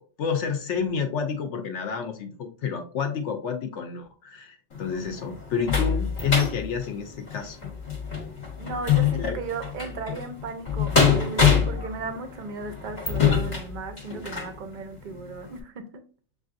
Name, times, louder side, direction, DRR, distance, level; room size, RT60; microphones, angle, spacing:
voice 1, 0.2-7.7 9.1-9.4, left 6 dB, 70° left, 5 dB, 0.8 m, -29 dB
sound 1, 4.7-14.6 15.1-15.2 15.6-15.7, left 6 dB, 40° left, 0.9 m, -25 dB
voice 2, 8.6-16.0, right 4 dB, 55° right, 7 dB, 0.6 m, -36 dB
6.7 x 2.4 x 2.5 m, 0.41 s
omnidirectional pair, 1.3 m